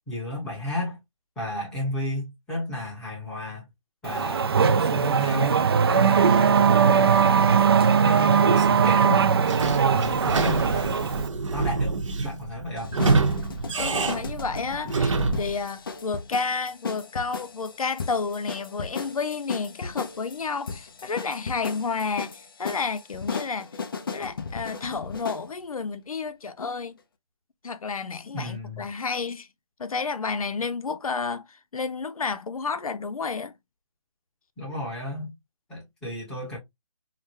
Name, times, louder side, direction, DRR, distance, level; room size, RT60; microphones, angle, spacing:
voice 1, 0.1-1.0 1.4-3.6 4.0-5.6 5.9-7.3 8.0-9.4 9.9-11.1 11.5-12.9 28.3-28.9 34.6-35.3 35.7-36.6, left 1 dB, 5° left, 1.1 m, -33 dB
Race car auto racing / Accelerating revving vroom, 4.0-11.3, right 6 dB, 45° right, 0.4 m, -20 dB
Sliding door / Squeak, 9.4-15.6, right 3 dB, 60° right, 0.8 m, -26 dB
sound 1, 12.8-25.5, left 5 dB, 40° left, 0.5 m, -36 dB
voice 2, 13.8-23.7 24.1-27.0 27.6-29.5 29.8-33.5, left 4 dB, 90° left, 0.6 m, -31 dB
4.9 x 2.2 x 2.7 m
hypercardioid pair, 165°, 18 cm